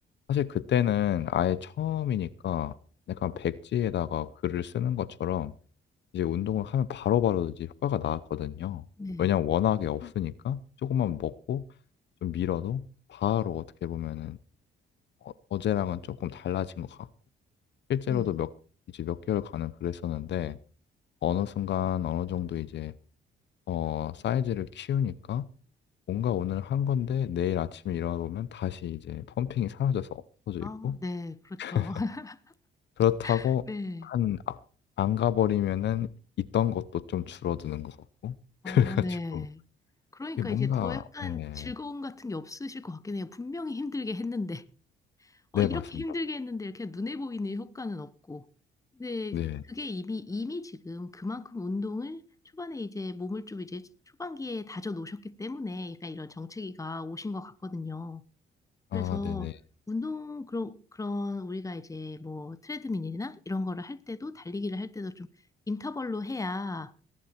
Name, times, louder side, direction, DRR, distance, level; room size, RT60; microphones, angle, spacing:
voice 1, 0.3-2.7 3.1-5.5 6.1-8.8 9.2-11.6 12.2-12.8 13.1-14.4 15.2-17.1 17.9-18.5 18.9-20.6 21.2-22.9 23.7-25.4 26.1-31.0 31.6-31.9 33.0-33.6 34.0-34.6 35.0-36.1 36.4-38.0 38.2-38.4 38.6-39.4 40.4-41.7 45.5-46.0 49.3-49.6 58.9-59.5, left 10 dB, 65° left, 0.8 m, -29 dB
voice 2, 30.6-32.4 33.2-34.1 38.6-39.6 40.1-44.6 45.5-48.4 49.0-49.4 49.7-52.2 52.5-53.9 54.2-58.2 58.9-59.5 59.9-65.3 65.7-66.9, left 3 dB, 15° left, 1.2 m, -35 dB
19.0 x 11.0 x 4.4 m
cardioid pair, 90°, 20 cm